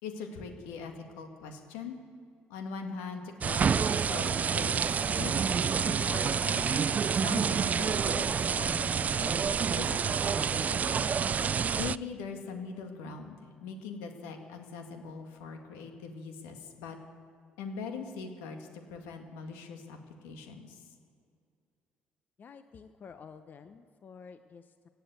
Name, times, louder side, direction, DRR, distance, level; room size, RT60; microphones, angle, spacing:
voice 1, 0.0-2.0 2.5-6.7 7.2-11.1 11.8-17.0 17.6-20.9, left 5 dB, 90° left, 4 dB, 1.9 m, -42 dB
sound 1, 3.4-12.0, right 6 dB, 40° right, 0.3 m, -28 dB
voice 2, 22.4-24.9, left 6 dB, 45° left, 10 dB, 0.8 m, -50 dB
17.5 x 9.1 x 8.2 m, 2.4 s
supercardioid pair, 70°, 4 cm